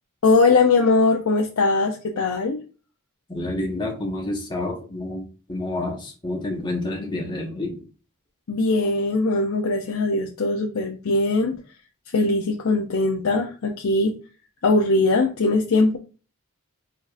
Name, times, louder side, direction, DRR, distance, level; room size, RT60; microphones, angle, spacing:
voice 1, 0.2-2.6 8.5-11.6 12.1-14.2 14.6-16.0, left 3 dB, 70° left, 1 dB, 0.7 m, -20 dB
voice 2, 3.3-7.8, left 2 dB, 20° left, 0 dB, 1.4 m, -29 dB
4.7 x 4.3 x 2.5 m, 0.35 s
head